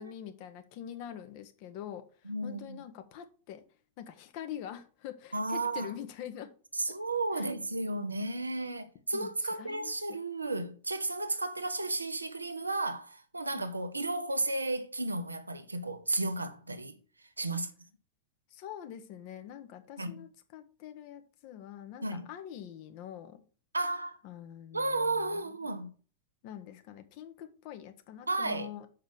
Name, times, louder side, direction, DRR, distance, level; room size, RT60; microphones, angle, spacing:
voice 1, 0.0-3.6 4.0-6.5 7.3-7.5 9.1-9.9 13.5-13.6 18.5-23.4 24.2-25.5 26.4-28.9, left 10 dB, 45° left, 1.1 m, -45 dB
voice 2, 2.3-2.8 5.3-5.9 6.8-17.0 17.4-17.7 20.0-20.2 22.0-22.3 23.7-24.2 24.7-25.9 28.3-28.7, right 2 dB, 80° right, 0.8 m, -33 dB
6.2 x 4.8 x 6.3 m
figure-of-eight pair, 90°, 0 cm